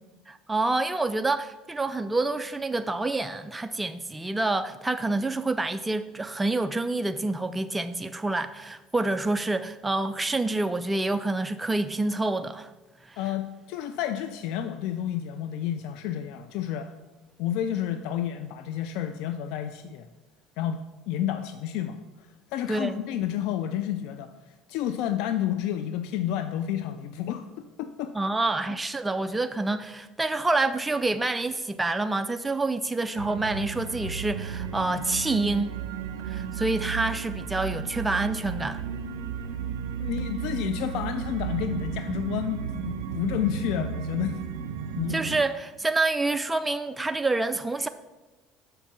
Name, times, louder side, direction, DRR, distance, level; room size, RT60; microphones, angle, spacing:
voice 1, 0.3-12.7 13.1-13.2 22.7-23.0 28.1-35.8 36.3-38.8 45.1-47.9, right 2 dB, 15° right, 0.3 m, -27 dB
voice 2, 13.2-16.9 17.4-20.1 20.6-20.8 21.1-24.3 24.7-27.5 27.8-28.1 40.0-44.4 45.0-45.2, left 10 dB, 70° left, 0.4 m, -30 dB
sound 1, 33.2-45.4, right 7 dB, 80° right, 0.6 m, -33 dB
6.5 x 4.5 x 6.0 m
supercardioid pair, 90°, 0 cm